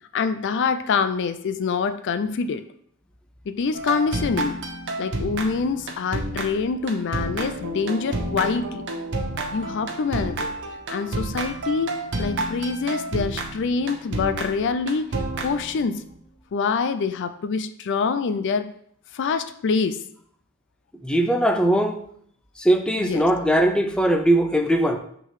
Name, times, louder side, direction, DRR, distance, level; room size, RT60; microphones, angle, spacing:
voice 1, 0.1-2.6 3.5-4.6 5.0-8.9 9.5-10.5 10.9-11.9 12.2-16.0 16.5-18.7 19.1-20.0 23.0-23.3, left 5 dB, 55° left, 11 dB, 0.4 m, -25 dB
sound 1, 3.7-16.1, right 2 dB, 60° right, 0.9 m, -30 dB
voice 2, 21.0-22.0 22.6-25.0, right 1 dB, 5° left, 5 dB, 0.5 m, -20 dB
5.8 x 3.7 x 5.5 m, 0.66 s
head